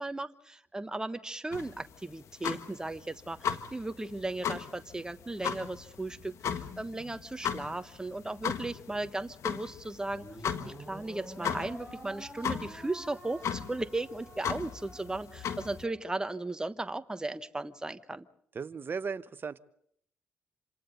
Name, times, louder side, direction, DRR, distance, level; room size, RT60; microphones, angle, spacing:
voice 1, 0.0-10.3 10.7-18.2, right 2 dB, 15° right, 10 dB, 1.2 m, -36 dB
sound 1, 1.5-15.8, left 8 dB, 65° left, 1.5 m, -37 dB
sound 2, 10.1-16.6, right 1 dB, 5° left, 6.8 m, -49 dB
voice 2, 18.5-19.6, right 5 dB, 40° right, 12 dB, 1.1 m, -36 dB
27.5 x 27.0 x 4.0 m, 0.68 s
supercardioid pair, 55°, 5 cm